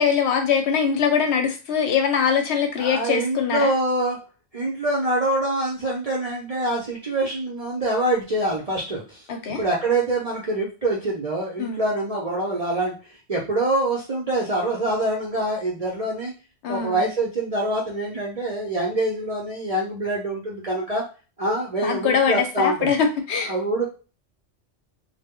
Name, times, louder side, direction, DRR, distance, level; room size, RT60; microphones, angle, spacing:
voice 1, 0.0-3.7 9.3-9.6 11.6-11.8 16.6-17.1 21.8-23.5, left 6 dB, 70° left, 4 dB, 0.8 m, -22 dB
voice 2, 2.8-4.2 4.5-13.0 13.3-16.3 16.7-21.0 21.4-22.9 23.5-23.9, right 1 dB, 45° right, -3 dB, 0.5 m, -25 dB
2.1 x 2.0 x 3.5 m, 0.34 s
omnidirectional pair, 1.2 m